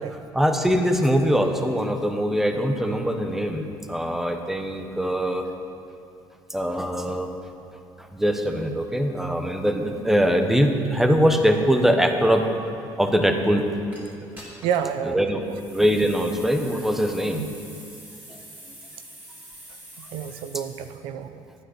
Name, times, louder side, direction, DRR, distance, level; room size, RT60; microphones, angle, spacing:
voice 1, 0.3-5.5 6.5-7.3 8.0-12.4 13.0-13.6 15.1-15.4 15.7-17.4, equal, 5° right, 5 dB, 1.0 m, -22 dB
sound 1, 13.9-14.0 14.4-14.9 15.4-21.0, right 1 dB, 20° right, 3.2 m, -45 dB
voice 2, 14.6-15.2 17.4-17.5 20.0-21.4, right 8 dB, 85° right, 10 dB, 0.7 m, -29 dB
13.0 x 9.1 x 6.4 m, 2.5 s
cardioid pair, 120°, 9 cm